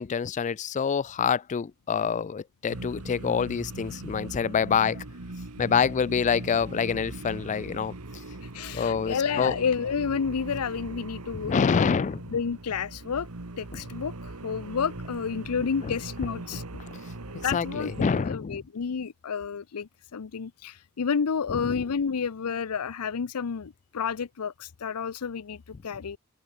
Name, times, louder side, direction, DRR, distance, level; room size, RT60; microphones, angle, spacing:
voice 1, 0.0-5.0 5.6-7.9 8.7-9.6 11.3-12.4 13.7-13.8 15.8-15.9 17.5-18.6 21.5-21.8, left 6 dB, 35° left, 0.3 m, -26 dB
sound 1, 2.7-18.2, right 2 dB, 85° right, 1.7 m, -40 dB
voice 2, 8.4-11.9 12.3-13.3 13.6-16.6 17.4-26.2, left 6 dB, 85° left, 0.6 m, -30 dB
head